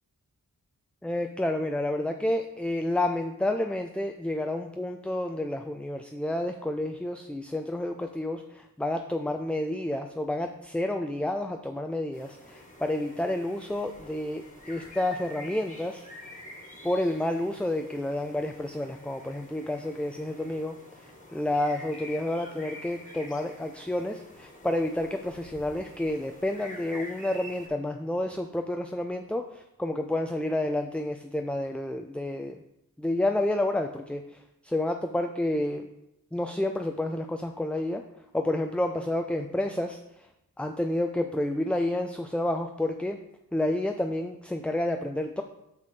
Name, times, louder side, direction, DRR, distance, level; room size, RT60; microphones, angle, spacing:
voice 1, 1.0-16.1 16.8-20.8 21.0-32.6 33.0-35.9 36.3-38.0 38.3-40.3 40.6-43.2 43.5-45.4, left 1 dB, 5° left, 5 dB, 0.4 m, -30 dB
sound 1, 12.1-27.7, left 1 dB, 20° left, 1.8 m, -47 dB
6.0 x 4.7 x 5.6 m, 0.86 s
cardioid pair, 55°, 37 cm